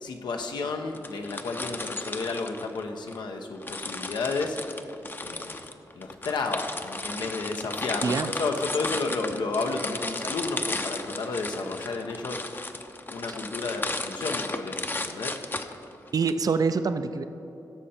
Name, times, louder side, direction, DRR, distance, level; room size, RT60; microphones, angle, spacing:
voice 1, 0.0-4.6 5.2-12.4 13.1-15.4, left 3 dB, 85° left, 4 dB, 0.9 m, -32 dB
cookiecrack amplified, 0.9-3.2 3.6-16.3, left 2 dB, 30° left, 0.6 m, -35 dB
voice 2, 16.1-17.2, right 5 dB, 55° right, 10 dB, 0.5 m, -25 dB
15.5 x 6.6 x 4.3 m, 3.0 s
cardioid pair, 55°, 7 cm